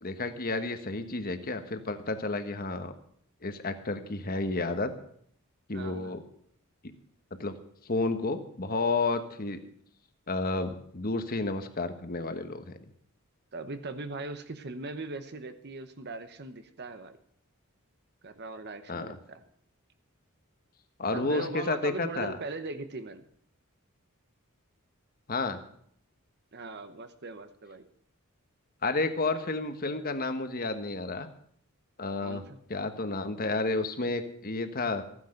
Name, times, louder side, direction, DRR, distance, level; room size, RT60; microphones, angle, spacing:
voice 1, 0.0-2.9 3.4-4.9 5.7-6.2 7.4-7.5 7.8-9.6 10.3-12.8 18.9-19.2 21.0-22.4 25.3-25.6 28.8-31.3 32.0-32.4 32.7-35.0, left 3 dB, 40° left, 9 dB, 1.2 m, -31 dB
voice 2, 5.7-6.1 13.5-17.2 18.2-19.4 21.1-23.2 26.5-27.9 32.2-32.6, right 3 dB, 50° right, 9 dB, 1.0 m, -39 dB
15.0 x 9.8 x 6.6 m, 0.67 s
head